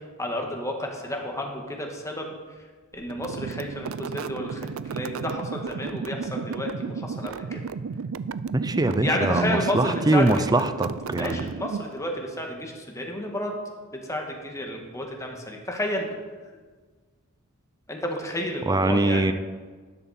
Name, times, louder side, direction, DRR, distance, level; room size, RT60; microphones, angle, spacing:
voice 1, 0.2-2.3 2.9-7.6 9.0-10.7 11.2-13.5 13.9-16.1 17.9-19.3, left 1 dB, 15° left, 1 dB, 1.7 m, -31 dB
sound 1, 3.1-12.1, right 5 dB, 70° right, 0.4 m, -33 dB
voice 2, 8.5-11.4 18.7-19.3, right 2 dB, 20° right, 11 dB, 0.5 m, -23 dB
12.5 x 11.0 x 4.3 m, 1.4 s
head